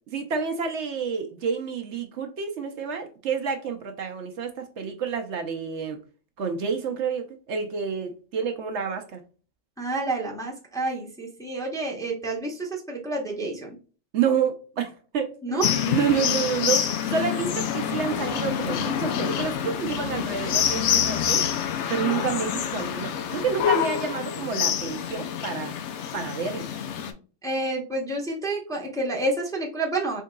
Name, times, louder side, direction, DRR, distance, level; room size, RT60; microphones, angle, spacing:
voice 1, 0.1-6.0 6.4-9.2 14.1-15.6 15.9-21.4 21.9-25.7 26.1-26.7, right 6 dB, 65° right, 0.9 m, -29 dB
voice 2, 9.8-13.8 15.4-15.8 27.4-30.2, right 2 dB, 5° left, 0.7 m, -29 dB
sound 1, 15.6-27.1, left 9 dB, 70° left, 0.9 m, -27 dB
3.7 x 3.7 x 2.2 m
omnidirectional pair, 1.3 m